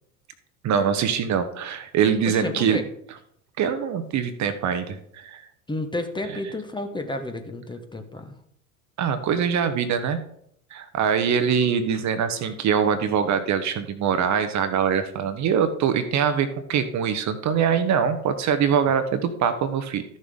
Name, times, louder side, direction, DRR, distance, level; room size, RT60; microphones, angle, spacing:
voice 1, 0.6-2.8 3.6-5.4 9.0-10.2 10.7-20.2, right 7 dB, 40° right, 9 dB, 1.1 m, -23 dB
voice 2, 2.3-2.9 5.7-8.3, left 2 dB, 10° left, 6 dB, 1.1 m, -31 dB
13.5 x 6.5 x 3.7 m, 0.71 s
figure-of-eight pair, 65°, 43 cm